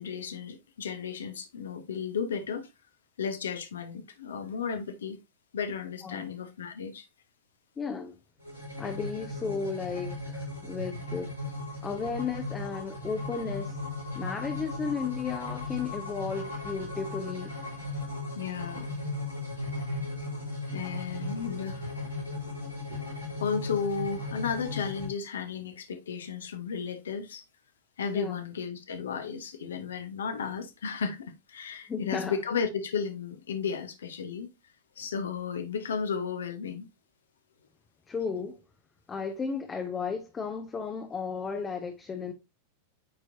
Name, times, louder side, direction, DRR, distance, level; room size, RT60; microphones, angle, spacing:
voice 1, 0.0-2.7 3.2-5.2 5.5-7.1 18.3-18.9 20.7-21.9 22.9-23.1 23.4-27.4 28.0-34.5 35.0-36.9, left 6 dB, 65° left, 1.1 m, -34 dB
voice 2, 7.8-8.2 8.8-11.3 11.8-13.8 14.1-17.5 28.1-28.4 31.9-32.4 38.1-38.6 39.1-42.3, left 5 dB, 20° left, 0.8 m, -34 dB
sound 1, 8.4-25.1, left 2 dB, 90° left, 3.3 m, -37 dB
8.8 x 4.6 x 2.7 m
figure-of-eight pair, 90°, 0 cm